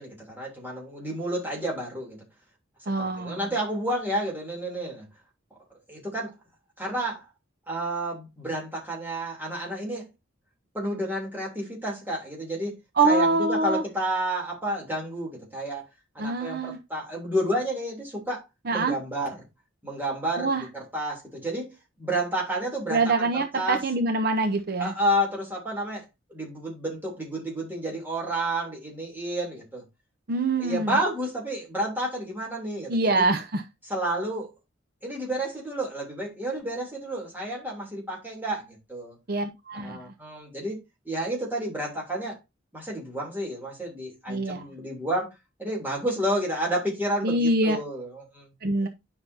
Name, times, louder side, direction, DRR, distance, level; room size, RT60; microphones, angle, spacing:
voice 1, 0.0-2.2 2.8-2.9 3.2-5.1 5.9-6.3 6.8-7.3 7.7-10.1 10.7-12.8 13.0-15.8 16.1-18.4 18.7-19.4 19.8-21.7 22.0-23.8 24.8-26.0 26.3-29.8 30.6-33.2 33.9-34.5 35.0-39.2 39.7-40.8 41.0-42.4 42.7-45.3 45.6-48.5, right 1 dB, 10° right, 3.0 m, -30 dB
voice 2, 2.9-3.4 13.0-13.8 16.2-16.8 18.7-19.0 20.4-20.6 22.9-24.9 30.3-31.0 32.9-33.6 39.3-40.1 44.3-44.6 47.2-47.8 48.6-48.9, right 2 dB, 50° right, 0.7 m, -24 dB
9.8 x 5.7 x 2.7 m
head